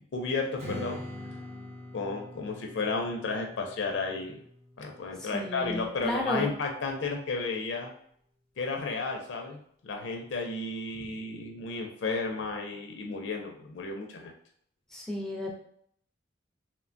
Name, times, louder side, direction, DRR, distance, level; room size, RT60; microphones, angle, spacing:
voice 1, 0.1-1.0 1.9-4.4 4.8-7.9 8.6-14.3, left 3 dB, 80° left, 2 dB, 0.4 m, -33 dB
Strum, 0.6-5.8, left 1 dB, 35° right, 0.8 m, -44 dB
voice 2, 5.3-6.5 14.9-15.6, left 1 dB, 5° left, -2 dB, 0.4 m, -32 dB
3.0 x 2.1 x 2.5 m, 0.66 s
head